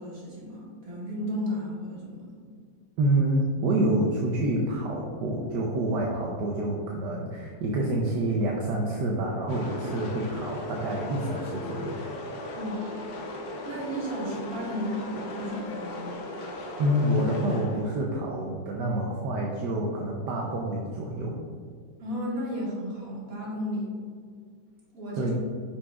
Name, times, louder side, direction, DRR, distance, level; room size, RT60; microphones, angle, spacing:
voice 1, 0.0-2.4 12.6-13.1 13.6-16.1 22.0-23.9 24.9-25.3, equal, 50° right, -5 dB, 2.3 m, -34 dB
voice 2, 3.0-12.0 16.8-21.4 25.2-25.3, right 1 dB, 75° right, -2 dB, 1.4 m, -27 dB
sound 1, 9.5-18.1, left 1 dB, 65° left, 1.2 m, -37 dB
9.5 x 5.9 x 2.4 m, 2.1 s
omnidirectional pair, 2.0 m